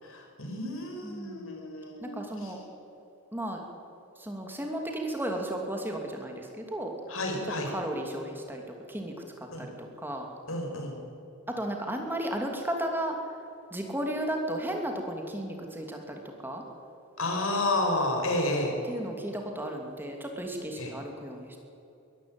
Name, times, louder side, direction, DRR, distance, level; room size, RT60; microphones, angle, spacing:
voice 1, 0.0-2.5 7.1-7.7 9.5-9.6 10.5-11.0 17.2-18.8 20.8-20.9, left 1 dB, 80° left, 2 dB, 5.2 m, -31 dB
voice 2, 1.0-1.6 2.0-2.6 3.3-3.6 4.2-6.9 7.7-8.6 8.9-9.1 9.6-9.7 10.0-10.3 11.5-13.2 13.7-16.6 18.9-21.6, right 1 dB, 10° right, 2 dB, 2.7 m, -34 dB
22.5 x 13.5 x 9.0 m, 2.8 s
head